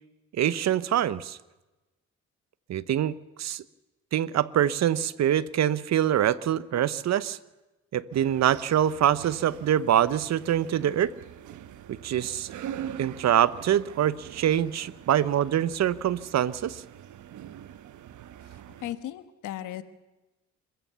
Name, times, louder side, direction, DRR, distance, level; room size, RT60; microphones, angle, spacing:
voice 1, 0.3-1.4 2.7-3.6 4.1-7.4 7.9-11.1 11.9-12.5 13.0-16.8, right 10 dB, 60° right, 18 dB, 0.9 m, -25 dB
sound 1, 8.1-18.9, right 10 dB, 75° right, 1.2 m, -43 dB
voice 2, 18.4-19.8, left 13 dB, 85° left, 12 dB, 1.4 m, -37 dB
27.0 x 15.0 x 6.9 m, 1.1 s
cardioid pair, 90°, 30 cm